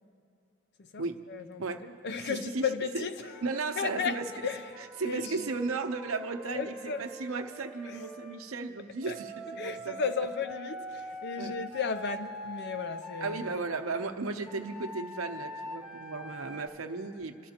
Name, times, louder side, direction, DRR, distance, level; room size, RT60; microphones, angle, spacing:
voice 1, 1.3-3.3 3.8-4.6 5.0-5.5 6.5-7.1 7.9-8.0 9.1-9.2 9.6-13.5, left 5 dB, 55° left, 0.6 m, -34 dB
voice 2, 2.2-2.7 2.9-3.1 3.4-4.3 4.8-10.0 11.4-11.5 13.2-17.5, right 3 dB, 90° right, 0.8 m, -35 dB
Wind instrument woodwind instrument, 3.3-8.4 9.0-13.7 14.5-16.7, equal, ahead, 1.3 m, -44 dB
29.5 x 13.0 x 2.9 m
head